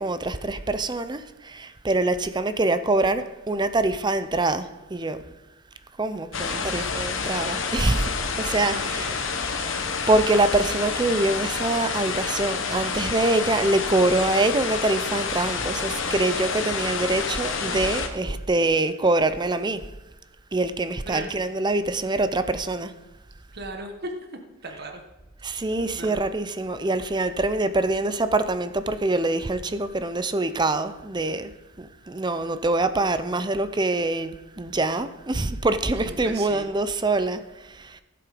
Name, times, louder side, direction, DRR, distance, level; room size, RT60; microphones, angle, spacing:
voice 1, 0.0-5.2 6.0-9.1 9.5-9.7 10.1-19.8 20.5-22.9 25.4-31.5 31.8-38.0, right 2 dB, 20° right, 0.6 m, -25 dB
sound 1, 6.3-18.1, left 5 dB, 65° left, 1.2 m, -28 dB
voice 2, 6.5-7.0 8.7-9.2 21.1-21.3 23.5-24.1 24.6-25.0 25.9-26.2 35.9-36.7, right 2 dB, 50° right, 1.5 m, -37 dB
16.0 x 7.7 x 5.1 m
head